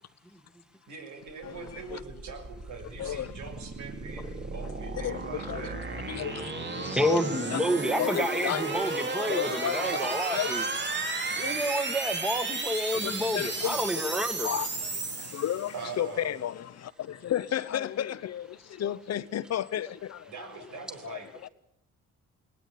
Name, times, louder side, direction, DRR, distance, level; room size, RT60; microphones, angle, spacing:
voice 1, 0.9-6.1 15.7-16.4 20.3-21.3, right 5 dB, 75° right, 6.4 m, -42 dB
voice 2, 1.4-2.0 3.0-3.4 4.6-4.7 5.0-7.2 7.5-7.6 8.0-9.0 9.3-11.7 12.9-13.9 14.4-20.3 20.7-21.5, left 11 dB, 60° left, 0.9 m, -34 dB
sound 1, 1.4-16.0, right 3 dB, 35° right, 3.3 m, -34 dB
voice 3, 6.8-10.6 11.4-14.5, equal, ahead, 1.8 m, -29 dB
21.5 x 18.5 x 8.4 m
cardioid pair, 90°, 30 cm